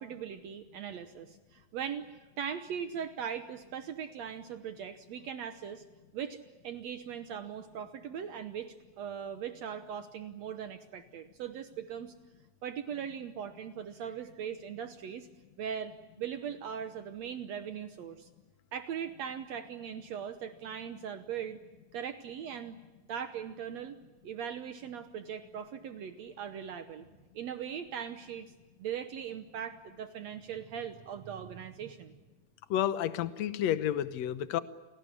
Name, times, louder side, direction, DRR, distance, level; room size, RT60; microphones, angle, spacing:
voice 1, 0.0-5.8 6.1-12.1 12.6-15.3 15.6-18.3 18.7-21.6 21.9-22.8 23.1-24.0 24.2-27.1 27.3-28.5 28.8-32.1, right 8 dB, 80° right, 9 dB, 1.5 m, -40 dB
voice 2, 32.7-34.6, left 11 dB, 80° left, 13 dB, 1.5 m, -30 dB
28.5 x 18.5 x 9.9 m, 1.2 s
omnidirectional pair, 4.4 m